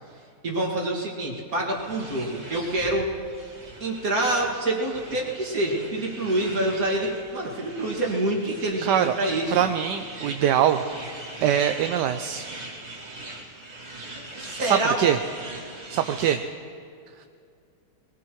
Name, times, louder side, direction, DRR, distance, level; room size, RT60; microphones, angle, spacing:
voice 1, 0.4-3.1 3.8-9.6 14.4-15.0, right 1 dB, 55° right, -2 dB, 2.6 m, -26 dB
sound 1, 1.7-16.4, right 2 dB, 40° right, 2.7 m, -41 dB
voice 2, 8.8-9.1 9.5-10.8 11.4-12.5 14.7-15.2 15.9-16.4 17.2-17.3, right 10 dB, 80° right, 7 dB, 1.2 m, -23 dB
21.5 x 21.5 x 3.1 m, 2.4 s
omnidirectional pair, 1.9 m